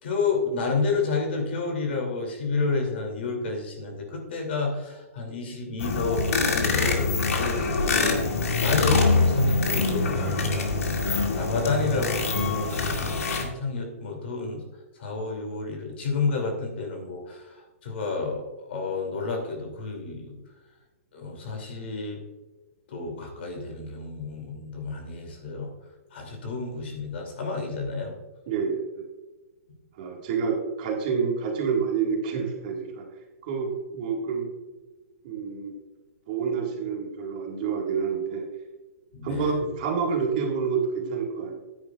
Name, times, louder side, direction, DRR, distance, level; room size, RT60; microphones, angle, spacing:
voice 1, 0.0-7.1 7.4-10.7 11.3-14.6 15.0-20.3 21.1-22.2 22.9-25.7 26.1-28.1 39.1-39.6, left 4 dB, 45° left, 2 dB, 2.6 m, -30 dB
sound 1, 5.8-13.4, left 3 dB, 75° left, 2.2 m, -24 dB
voice 2, 28.5-29.0 30.0-33.0 33.4-34.5 35.2-35.7 36.3-38.4 39.2-41.6, right 5 dB, 30° right, 0 dB, 1.7 m, -28 dB
13.0 x 10.0 x 2.4 m, 1.2 s
hypercardioid pair, 175°, 8 cm